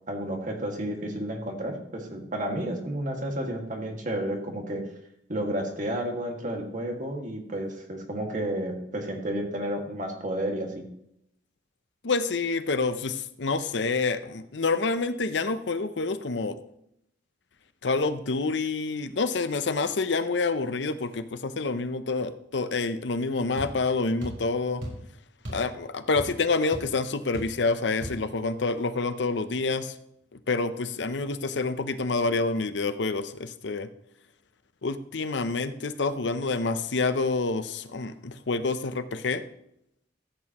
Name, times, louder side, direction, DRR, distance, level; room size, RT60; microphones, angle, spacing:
voice 1, 0.1-4.9 5.3-10.9, right 1 dB, 45° right, 2 dB, 2.0 m, -31 dB
voice 2, 12.0-16.6 17.8-24.8 25.5-29.9 30.3-33.9 34.8-39.4, left 3 dB, 70° left, 11 dB, 0.7 m, -28 dB
sound 1, 23.6-23.8 24.2-24.5 24.8-25.0 25.4-25.7 25.9-26.5 26.7-26.9 27.3-27.6 28.0-28.2, equal, 85° right, 4.2 m, -36 dB
14.5 x 8.6 x 3.0 m, 0.75 s
head